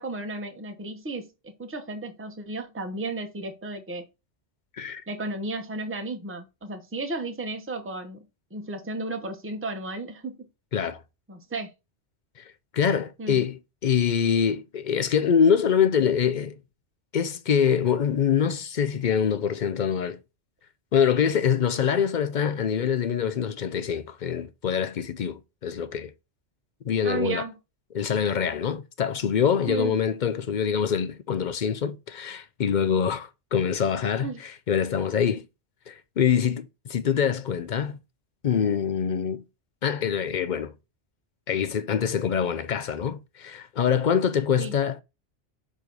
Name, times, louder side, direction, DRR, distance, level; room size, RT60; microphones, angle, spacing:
voice 1, 0.0-4.1 5.1-8.2 8.5-10.5 11.3-11.7 13.2-13.4 27.0-27.5 29.7-30.0 34.2-34.4 44.6-44.7, right 3 dB, 15° right, 0.8 m, -33 dB
voice 2, 12.4-16.6 17.1-20.2 20.9-26.1 26.8-27.4 27.9-35.4 35.9-38.0 38.4-39.4 39.8-40.7 41.5-45.0, left 7 dB, 55° left, 0.6 m, -25 dB
6.4 x 3.1 x 5.2 m
omnidirectional pair, 1.2 m